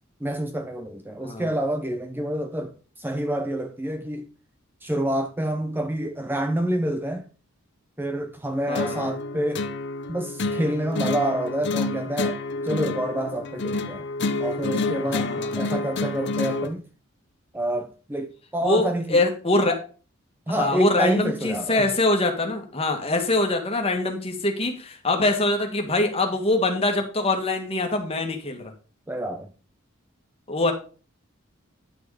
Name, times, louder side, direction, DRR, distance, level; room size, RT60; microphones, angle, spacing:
voice 1, 0.2-4.3 4.8-7.2 8.0-9.6 10.1-12.4 12.6-14.0 14.4-16.8 17.5-19.2 20.5-21.9 29.1-29.5, right 1 dB, 10° right, 0.6 m, -27 dB
sound 1, 8.7-16.7, left 3 dB, 55° left, 0.8 m, -29 dB
voice 2, 8.7-9.1 15.1-15.6 18.6-19.8 20.5-28.7 30.5-30.7, left 2 dB, 30° left, 1.7 m, -24 dB
10.5 x 6.3 x 4.9 m
head